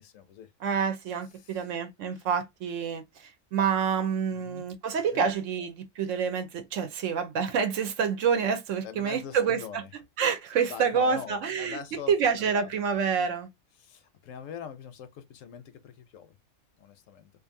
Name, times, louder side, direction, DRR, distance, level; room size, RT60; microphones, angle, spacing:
voice 1, 0.0-0.5 1.4-1.5 4.3-4.6 5.1-5.3 8.8-9.9 10.7-12.1 12.4-12.7 13.8-16.3 16.8-17.3, left 8 dB, 75° left, 0.9 m, -43 dB
voice 2, 0.6-9.8 10.2-11.8 12.1-13.5, right 6 dB, 70° right, 1.0 m, -28 dB
2.6 x 2.5 x 2.5 m
omnidirectional pair, 1.4 m